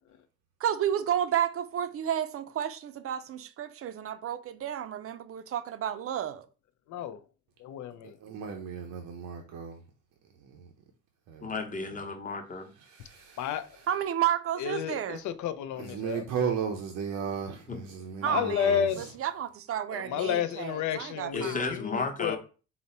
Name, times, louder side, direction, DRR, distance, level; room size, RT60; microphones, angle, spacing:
voice 1, 0.6-6.5 13.9-15.2 18.2-18.7 19.2-21.7, right 10 dB, 50° right, 0.5 m, -31 dB
voice 2, 6.9-7.2 7.6-8.2 13.4-13.8 14.6-16.2 18.2-19.1 19.9-22.4, left 9 dB, 75° left, 0.5 m, -31 dB
voice 3, 8.2-9.8 10.2-10.7 11.3-11.5 11.9-12.0 12.7-13.9 15.7-19.0, right 7 dB, 85° right, 0.7 m, -36 dB
voice 4, 11.4-12.7 17.7-17.8 21.3-22.4, left 3 dB, 25° left, 0.9 m, -33 dB
3.9 x 2.1 x 4.1 m
cardioid pair, 90°, 30 cm